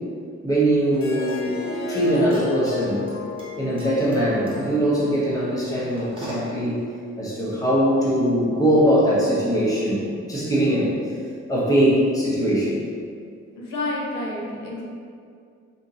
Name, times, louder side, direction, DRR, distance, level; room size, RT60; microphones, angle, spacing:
voice 1, 0.4-3.1 3.6-6.8 7.2-11.1 11.5-12.8, equal, 10° left, -7 dB, 1.1 m, -21 dB
Harp, 0.9-6.1, left 3 dB, 45° left, 0.6 m, -34 dB
sound 1, 2.1-6.7, right 1 dB, 15° right, 1.1 m, -42 dB
voice 2, 13.5-14.8, left 2 dB, 90° left, -4 dB, 0.8 m, -29 dB
2.8 x 2.8 x 3.9 m, 2.3 s
cardioid pair, 90°, 30 cm